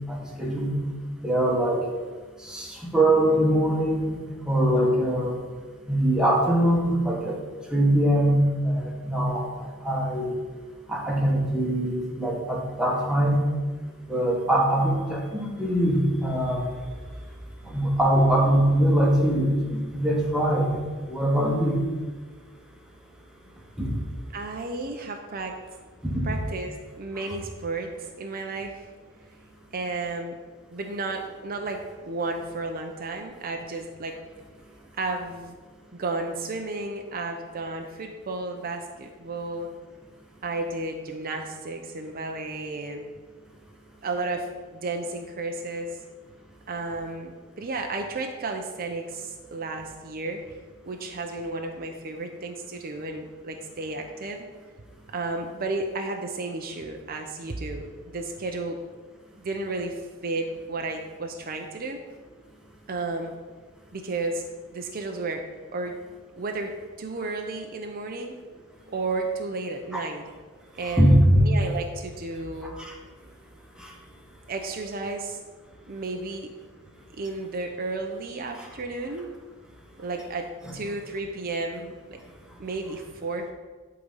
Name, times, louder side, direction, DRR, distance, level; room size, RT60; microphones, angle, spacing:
voice 1, 0.1-0.7 1.2-1.8 2.4-4.2 4.5-5.4 5.9-7.4 7.7-10.3 10.9-13.4 14.1-16.6 17.7-20.8 21.1-21.8 23.8-23.9 26.0-26.2 69.9-70.0 70.9-71.4 72.7-72.9 73.8-73.9 80.7-80.8, right 1 dB, 5° right, -2 dB, 1.5 m, -22 dB
voice 2, 24.3-25.5 26.2-28.9 29.7-30.3 30.7-34.2 34.9-35.5 35.9-39.7 40.4-43.1 44.0-46.0 46.7-50.4 50.9-54.4 55.1-58.8 59.4-62.0 62.9-63.3 63.9-64.4 64.7-65.4 65.7-65.9 66.4-66.7 67.0-68.4 68.9-70.2 70.8-72.8 74.5-75.4 75.9-76.5 77.1-79.3 80.0-82.2 82.6-83.5, right 3 dB, 45° right, 3 dB, 0.6 m, -33 dB
11.0 x 3.9 x 5.5 m, 1.4 s
head